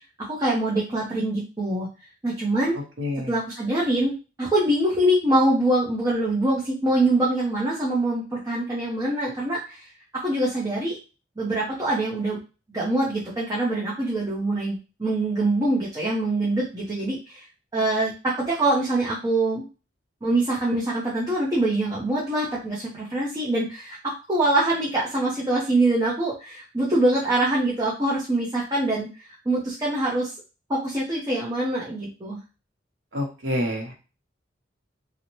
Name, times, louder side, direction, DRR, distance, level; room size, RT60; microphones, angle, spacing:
voice 1, 0.3-1.9 2.2-2.8 3.3-9.8 10.2-11.0 11.4-12.4 12.7-17.4 17.7-19.6 20.2-24.0 24.3-29.1 29.5-30.3 30.7-32.4, right 1 dB, 20° right, -6 dB, 0.6 m, -24 dB
voice 2, 3.0-3.3 33.1-33.9, left 1 dB, 70° right, 1 dB, 0.8 m, -27 dB
2.7 x 2.1 x 3.0 m, 0.33 s
head